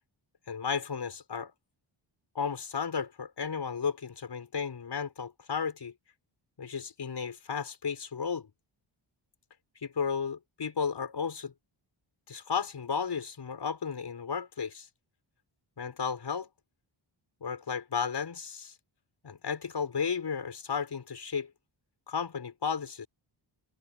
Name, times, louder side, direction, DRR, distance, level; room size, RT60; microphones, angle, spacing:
voice 1, 0.5-1.5 2.3-5.9 6.6-8.5 9.8-11.5 12.3-14.9 15.8-16.5 17.4-18.7 19.2-21.5 22.1-23.1, left 6 dB, 55° left, 6.2 m, -33 dB
wide cardioid pair, 105°, 50 cm